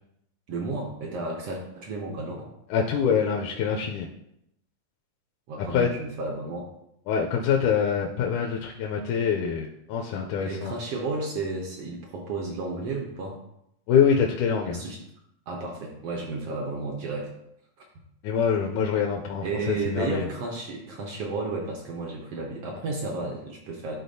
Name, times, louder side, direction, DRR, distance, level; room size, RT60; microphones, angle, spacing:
voice 1, 0.5-2.5 5.5-6.7 10.4-13.4 14.7-15.0 15.5-17.3 19.4-24.0, right 3 dB, 70° right, 0 dB, 1.5 m, -32 dB
voice 2, 2.7-4.1 5.7-5.9 7.1-10.7 13.9-14.8 18.2-20.3, left 7 dB, 85° left, 1 dB, 2.0 m, -25 dB
12.0 x 4.0 x 2.7 m, 0.78 s
omnidirectional pair, 3.5 m